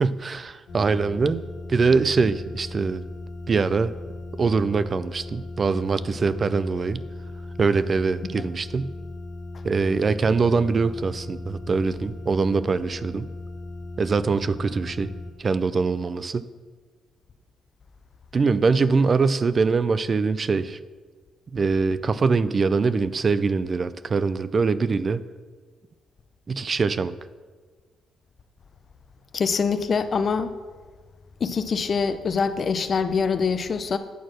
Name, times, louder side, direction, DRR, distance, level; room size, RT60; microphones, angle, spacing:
voice 1, 0.0-3.0 3.5-3.9 4.4-7.0 7.6-9.0 9.6-13.3 14.0-15.1 15.4-16.5 18.3-20.8 21.5-25.2 26.5-27.1, right 4 dB, 40° right, 14 dB, 0.4 m, -23 dB
sound 1, 0.7-15.3, left 2 dB, 75° left, 1.5 m, -37 dB
voice 2, 29.3-30.5 31.4-34.0, left 5 dB, 45° left, 11 dB, 0.6 m, -24 dB
9.1 x 4.2 x 6.3 m, 1.5 s
cardioid pair, 90°, 0 cm